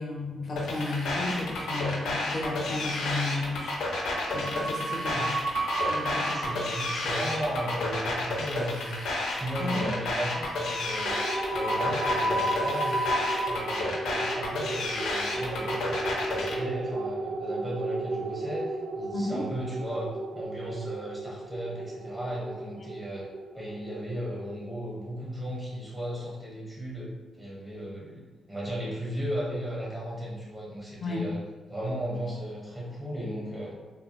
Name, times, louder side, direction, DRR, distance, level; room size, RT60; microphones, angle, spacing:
voice 1, 0.0-3.7 4.3-5.3 5.9-6.4 9.6-9.8 19.1-19.4 31.0-31.3, left 2 dB, 45° left, 0 dB, 0.6 m, -33 dB
sound 1, 0.6-16.6, left 2 dB, 85° left, 0.5 m, -31 dB
sound 2, 1.6-2.2 2.5-2.7 3.9-13.5, right 1 dB, 60° right, 0.6 m, -33 dB
voice 2, 5.0-5.3 6.2-8.9 9.4-11.1 11.5-13.0 13.5-23.3 23.5-27.1 27.4-31.4 31.7-33.8, equal, 10° right, -6 dB, 1.0 m, -35 dB
sound 3, 11.1-25.8, right 2 dB, 90° right, 0.3 m, -36 dB
3.4 x 2.3 x 2.3 m, 1.2 s
cardioid pair, 115°, 0 cm